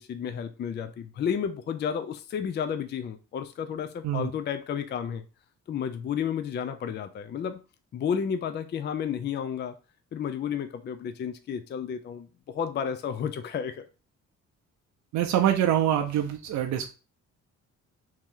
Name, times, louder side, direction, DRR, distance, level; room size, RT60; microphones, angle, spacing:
voice 1, 0.0-5.2 5.7-7.6 7.9-9.8 10.1-13.8, left 7 dB, 35° left, 0.4 m, -32 dB
voice 2, 15.1-16.9, right 11 dB, 65° right, 0.6 m, -25 dB
3.1 x 2.7 x 3.6 m
cardioid pair, 90°, 30 cm